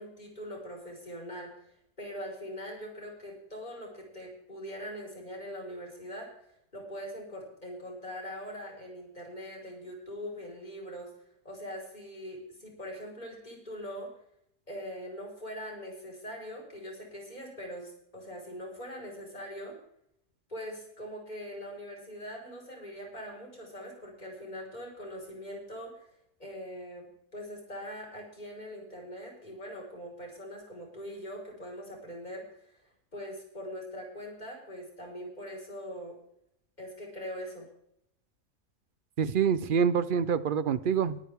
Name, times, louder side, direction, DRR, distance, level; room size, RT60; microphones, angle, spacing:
voice 1, 0.0-1.5 2.0-11.1 11.4-14.1 14.7-19.8 20.5-26.1 26.4-32.7 33.1-36.2 36.8-37.7, equal, 30° left, -1 dB, 4.5 m, -42 dB
voice 2, 39.2-41.2, right 7 dB, 55° right, 14 dB, 0.6 m, -26 dB
21.0 x 9.1 x 3.5 m, 0.74 s
omnidirectional pair, 1.5 m